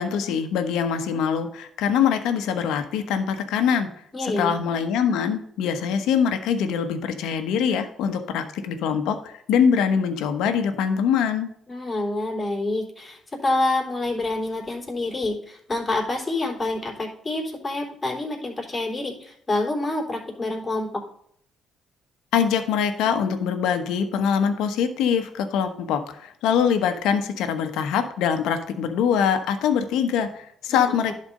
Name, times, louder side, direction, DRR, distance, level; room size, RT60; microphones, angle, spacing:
voice 1, 0.0-3.9 4.2-11.5 22.3-31.1, left 7 dB, 85° left, 8 dB, 1.1 m, -23 dB
voice 2, 4.1-4.5 11.7-21.0, left 2 dB, 25° left, -2 dB, 3.6 m, -27 dB
11.0 x 4.4 x 5.3 m, 0.66 s
cardioid pair, 80°, 0 cm